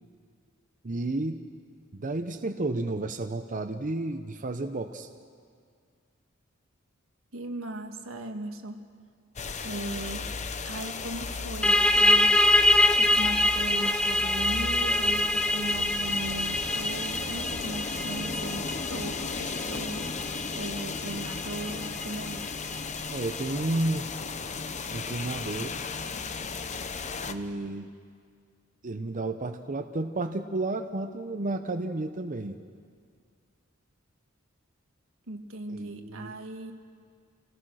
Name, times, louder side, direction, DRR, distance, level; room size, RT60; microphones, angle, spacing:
voice 1, 0.8-1.4 1.9-5.1 23.1-24.1 24.9-25.8 27.2-27.9 28.8-32.6 35.7-36.3, right 2 dB, 40° right, 7 dB, 0.7 m, -32 dB
voice 2, 7.3-8.8 9.6-10.3 10.6-12.3 13.0-22.5 35.3-36.7, right 2 dB, 85° right, 5 dB, 1.6 m, -38 dB
sound 1, 9.4-27.3, left 4 dB, 35° left, 0.8 m, -35 dB
sound 2, 11.6-23.0, left 1 dB, 5° left, 0.5 m, -25 dB
28.0 x 17.5 x 6.3 m, 2.1 s
head